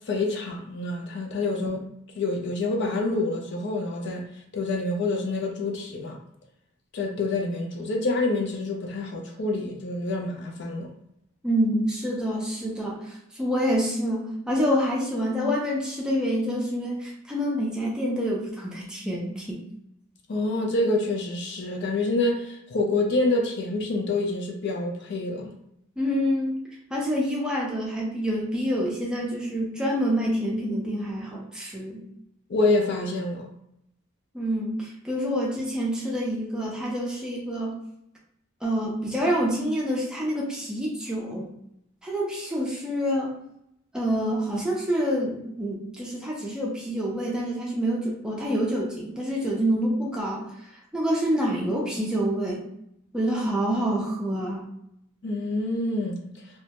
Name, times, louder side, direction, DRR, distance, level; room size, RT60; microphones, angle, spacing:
voice 1, 0.1-1.8 2.2-4.3 4.5-6.2 6.9-10.9 20.3-25.5 32.5-33.5 55.2-56.3, left 2 dB, 55° left, 0.4 m, -27 dB
voice 2, 11.4-19.6 26.0-26.5 26.9-32.0 34.3-37.7 38.6-41.5 42.0-43.3 43.9-50.5 50.9-52.7 53.1-54.7, equal, 5° right, 0.4 m, -27 dB
2.1 x 2.0 x 2.8 m
head